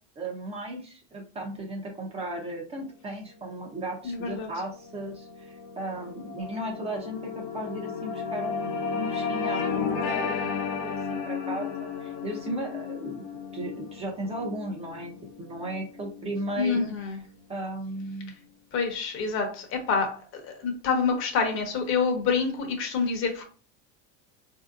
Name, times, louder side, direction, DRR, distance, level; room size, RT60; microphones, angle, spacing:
voice 1, 0.2-13.2 13.5-15.1 15.4-17.2 17.5-18.3, right 1 dB, 20° right, 0 dB, 0.7 m, -36 dB
sound 1, 3.9-16.5, left 6 dB, 70° left, 0.8 m, -34 dB
voice 2, 4.0-4.5 16.6-17.2 18.7-23.4, left 5 dB, 40° left, 3 dB, 0.9 m, -27 dB
4.2 x 2.7 x 2.4 m, 0.39 s
cardioid pair, 150°, 33 cm